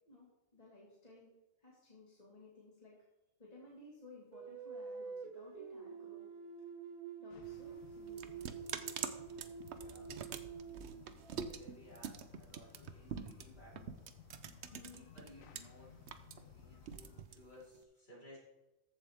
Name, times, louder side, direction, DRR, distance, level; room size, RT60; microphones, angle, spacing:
voice 1, 0.1-1.3 1.6-3.0 3.4-6.3 7.2-8.6 14.7-15.0, left 2 dB, 30° left, -4 dB, 1.9 m, -58 dB
sound 1, 4.3-11.7, right 5 dB, 85° right, 1.5 m, -48 dB
sound 2, 7.3-17.2, left 7 dB, 75° left, 1.1 m, -59 dB
sound 3, 7.4-15.6 15.9-17.8, right 7 dB, 60° right, 0.9 m, -45 dB
voice 2, 9.7-10.2 10.8-14.0 14.9-16.0 16.4-18.4, left 1 dB, 45° left, -6 dB, 4.7 m, -59 dB
14.0 x 7.6 x 3.5 m, 1.0 s
omnidirectional pair, 1.4 m